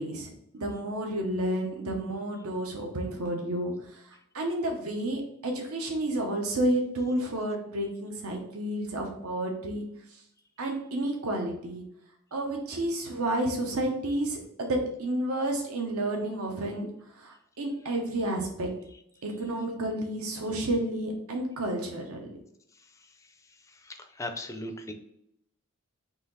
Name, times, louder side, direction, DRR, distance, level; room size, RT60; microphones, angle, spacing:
voice 1, 0.0-4.0 4.3-9.9 10.6-11.8 12.3-18.7 19.2-22.4, right 1 dB, 80° right, 1 dB, 0.9 m, -31 dB
voice 2, 23.9-24.9, left 1 dB, 15° left, 6 dB, 0.4 m, -37 dB
4.1 x 2.9 x 4.0 m, 0.75 s
head